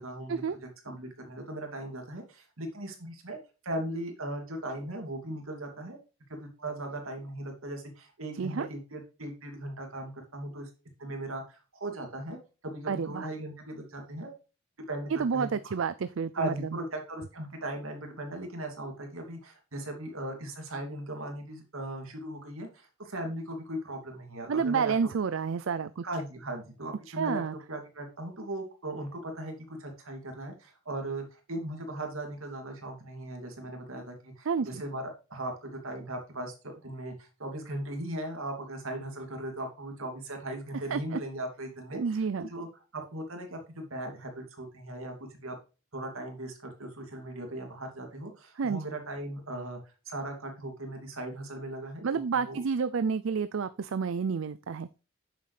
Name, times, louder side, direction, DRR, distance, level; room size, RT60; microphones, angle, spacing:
voice 1, 0.0-3.4 3.6-6.0 6.3-10.7 11.0-12.4 12.6-14.3 14.9-15.5 16.3-24.9 26.0-27.4 27.7-35.0 35.3-42.2 42.5-42.7 42.9-45.6 45.9-52.6, right 1 dB, 90° right, 3 dB, 2.8 m, -38 dB
voice 2, 12.9-13.3 15.1-16.8 24.5-26.0 27.1-27.6 34.5-34.8 40.9-41.2 41.9-42.5 48.6-48.8 52.0-54.9, right 5 dB, 70° right, 13 dB, 0.5 m, -30 dB
9.4 x 7.4 x 3.3 m, 0.32 s
head